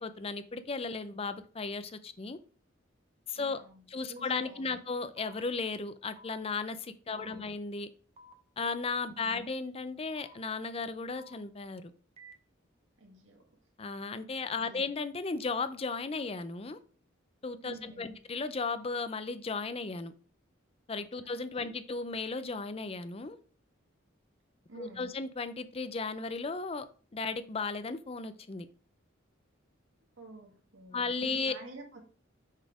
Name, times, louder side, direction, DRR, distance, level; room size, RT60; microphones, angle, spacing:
voice 1, 0.0-2.4 3.3-3.6 3.9-7.9 8.6-11.9 13.8-16.8 17.4-20.1 20.9-23.4 24.8-26.9 27.1-28.7 30.9-31.5, left 4 dB, 30° left, 0.5 m, -35 dB
voice 2, 3.4-4.8 7.1-7.5 9.1-9.5 13.0-13.5 14.5-14.9 17.6-18.2 21.2-21.7 24.7-25.2 30.2-32.1, right 2 dB, 80° right, 2.0 m, -50 dB
sound 1, 4.2-4.3 5.2-5.3 6.2-6.3 7.2-7.3 8.2-8.3 9.2-9.3 10.2-10.3 11.2-11.3 12.2-12.3, left 1 dB, 35° right, 0.7 m, -53 dB
6.4 x 4.2 x 4.9 m
head